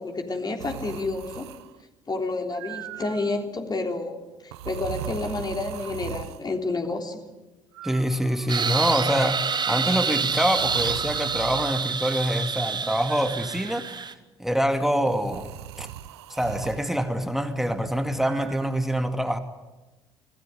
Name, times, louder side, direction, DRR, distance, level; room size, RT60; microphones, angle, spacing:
voice 1, 0.0-1.5 2.1-7.2, left 3 dB, 30° left, 3 dB, 3.5 m, -30 dB
sound 1, 0.6-1.8 2.5-3.4 4.5-6.5 7.7-8.7 9.8-11.9 13.1-13.8 15.1-16.9 18.2-18.7, right 11 dB, 75° right, 0.8 m, -39 dB
voice 2, 7.8-14.1 14.4-15.9 16.3-19.4, equal, ahead, 7 dB, 2.3 m, -25 dB
sound 2, 8.5-14.1, right 5 dB, 30° right, 1.5 m, -27 dB
26.5 x 17.5 x 9.6 m, 1.1 s
figure-of-eight pair, 55°, 14 cm